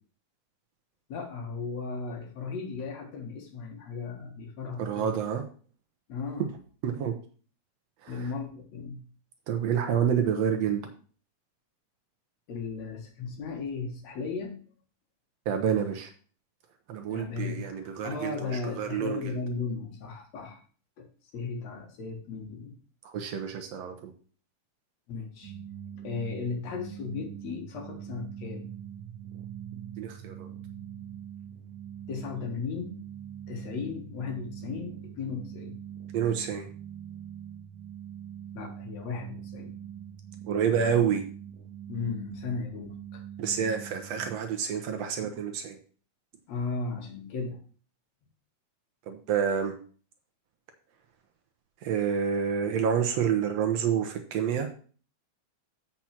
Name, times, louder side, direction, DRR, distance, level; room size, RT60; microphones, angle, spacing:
voice 1, 1.1-5.1 6.1-6.5 8.1-9.0 12.5-14.6 17.1-20.6 21.0-21.1 21.3-22.8 25.1-25.5 26.0-28.7 32.1-33.0 33.5-35.8 38.5-39.7 41.9-43.2 46.5-47.6, left 4 dB, 65° left, 2 dB, 2.8 m, -36 dB
voice 2, 4.8-5.4 6.8-7.1 8.0-8.3 9.5-10.9 15.5-16.1 16.9-19.4 23.0-24.1 30.0-30.5 36.1-36.7 40.5-41.2 43.4-45.8 49.1-49.8 51.8-54.8, right 8 dB, 65° right, 6 dB, 2.0 m, -28 dB
sound 1, 25.4-44.4, right 9 dB, 85° right, 2.2 m, -43 dB
7.7 x 5.9 x 5.9 m, 0.42 s
omnidirectional pair, 3.4 m